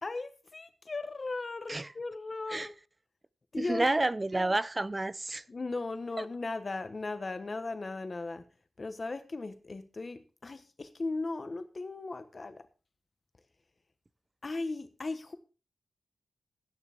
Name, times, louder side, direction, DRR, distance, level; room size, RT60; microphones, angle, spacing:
voice 1, 0.0-2.7 3.5-3.9 5.5-8.4 8.8-12.7 14.4-15.3, left 3 dB, 35° left, 1.2 m, -37 dB
voice 2, 3.6-5.4, right 2 dB, 20° right, 0.5 m, -29 dB
14.5 x 9.4 x 3.6 m
wide cardioid pair, 130°, 0 cm